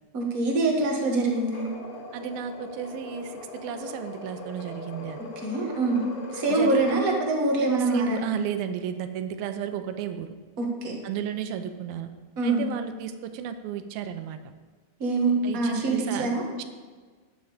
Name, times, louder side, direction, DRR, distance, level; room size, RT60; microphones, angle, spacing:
voice 1, 0.1-1.7 5.2-6.0 6.3-8.3 10.6-10.9 12.4-12.7 15.0-16.4, right 2 dB, 50° right, 0 dB, 0.9 m, -25 dB
sound 1, 1.3-7.1, left 3 dB, 85° left, 3.5 m, -40 dB
voice 2, 2.1-5.2 6.5-7.3 7.8-10.3 11.0-12.1 12.4-14.4 15.4-16.3, right 8 dB, 80° right, 9 dB, 2.5 m, -33 dB
11.5 x 9.4 x 5.0 m, 1.5 s
omnidirectional pair, 4.4 m